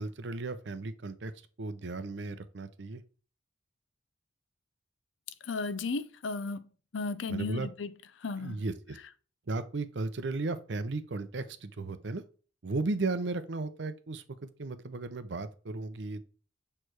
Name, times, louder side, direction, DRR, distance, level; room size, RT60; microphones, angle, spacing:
voice 1, 0.0-1.3 1.6-3.0 7.3-7.7 8.4-9.0 9.5-12.2 12.6-16.3, right 3 dB, 70° right, 0.6 m, -35 dB
voice 2, 5.4-6.7 6.9-7.9 8.2-8.6, left 3 dB, 80° left, 0.5 m, -34 dB
6.5 x 3.2 x 4.5 m
head